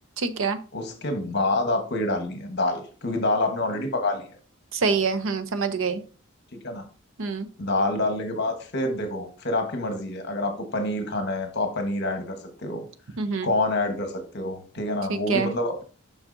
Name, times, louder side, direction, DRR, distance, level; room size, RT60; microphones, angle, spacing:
voice 1, 0.2-0.6 4.7-6.0 7.2-7.5 13.2-13.5 15.1-15.5, right 5 dB, 70° right, 9 dB, 0.6 m, -25 dB
voice 2, 0.7-4.3 6.5-6.8 7.6-12.4 12.6-12.8 13.4-15.8, left 2 dB, 55° left, 5 dB, 1.1 m, -27 dB
7.1 x 5.6 x 2.6 m, 0.37 s
head